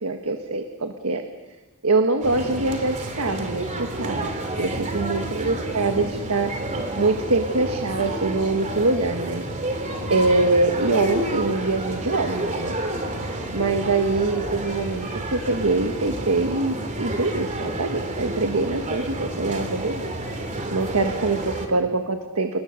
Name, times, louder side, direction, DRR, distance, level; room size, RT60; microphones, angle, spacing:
voice 1, 0.0-1.2 1.8-3.7 4.0-4.3 4.6-6.5 7.0-9.4 10.1-12.8 13.5-20.0 20.7-22.6, right 3 dB, 75° right, 6 dB, 1.5 m, -24 dB
sound 1, 2.2-21.7, right 1 dB, 35° right, 3.0 m, -30 dB
30.0 x 18.5 x 6.6 m, 1.2 s
head